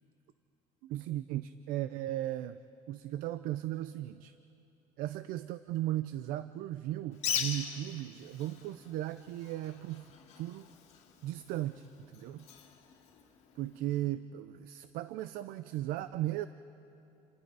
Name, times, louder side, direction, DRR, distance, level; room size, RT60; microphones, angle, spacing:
voice 1, 0.8-2.6 2.9-4.3 5.0-10.1 10.4-10.7 11.2-12.5 13.6-16.5, right 14 dB, 70° right, 13 dB, 0.5 m, -36 dB
Bird, 7.1-13.8, left 7 dB, 45° left, 2.1 m, -41 dB
29.0 x 27.0 x 4.8 m, 2.9 s
cardioid pair, 180°, 15 cm